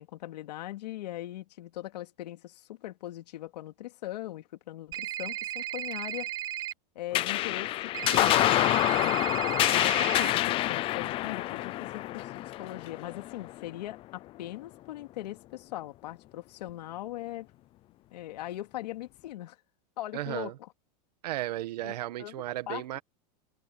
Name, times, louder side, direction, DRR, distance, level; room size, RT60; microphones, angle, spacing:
voice 1, 0.0-6.3 6.9-9.2 9.7-17.5 18.1-19.6 20.0-20.5 21.8-22.3 22.7-22.8, left 15 dB, 80° left, 2.8 m, -40 dB
sound 1, 4.9-6.7 7.9-10.3, right 13 dB, 20° right, 0.5 m, -35 dB
sound 2, 7.1-13.9, left 16 dB, 25° left, 0.6 m, -27 dB
voice 2, 20.1-20.5 21.2-23.0, right 15 dB, 75° right, 1.6 m, -34 dB
supercardioid pair, 160°, 21 cm